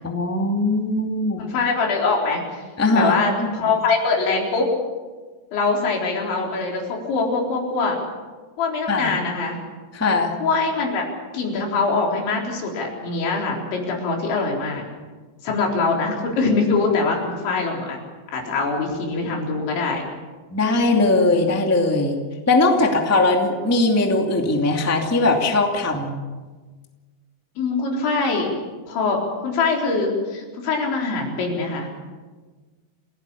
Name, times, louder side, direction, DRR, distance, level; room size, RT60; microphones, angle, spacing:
voice 1, 0.0-1.4 2.8-3.6 8.9-9.1 9.9-10.3 20.5-22.2 22.5-26.1, left 2 dB, 5° left, 2 dB, 1.1 m, -20 dB
voice 2, 1.4-2.4 3.0-4.7 5.5-8.0 8.6-9.6 10.4-11.0 11.3-14.8 15.4-18.0 18.3-20.0 21.1-21.2 27.6-28.5 28.9-31.9, left 4 dB, 85° left, 0 dB, 6.3 m, -23 dB
29.5 x 17.0 x 7.2 m, 1.4 s
omnidirectional pair, 5.1 m